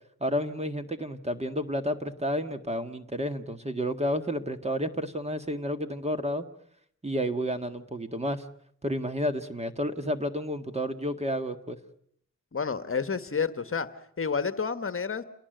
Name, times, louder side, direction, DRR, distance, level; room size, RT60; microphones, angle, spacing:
voice 1, 0.2-6.5 7.0-8.4 8.8-11.8, equal, 20° right, 8 dB, 1.8 m, -31 dB
voice 2, 12.5-13.9 14.2-15.2, left 5 dB, 45° left, 11 dB, 1.5 m, -29 dB
28.0 x 19.0 x 9.2 m, 0.66 s
wide cardioid pair, 100°, 31 cm